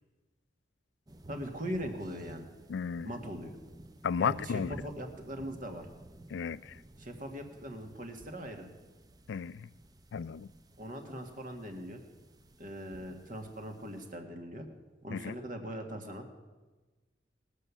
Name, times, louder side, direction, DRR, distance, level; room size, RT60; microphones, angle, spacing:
sound 1, 1.1-14.1, right 1 dB, 20° right, 0.6 m, -53 dB
voice 1, 1.3-2.5 3.0-3.5 4.2-5.9 7.0-8.7 10.8-12.0 12.6-14.7 15.0-16.3, equal, 45° right, 1.7 m, -40 dB
voice 2, 2.7-3.1 4.0-4.8 6.3-6.7 9.3-9.7 10.1-10.5 15.1-15.3, left 6 dB, 75° left, 0.4 m, -33 dB
19.5 x 6.6 x 7.0 m
head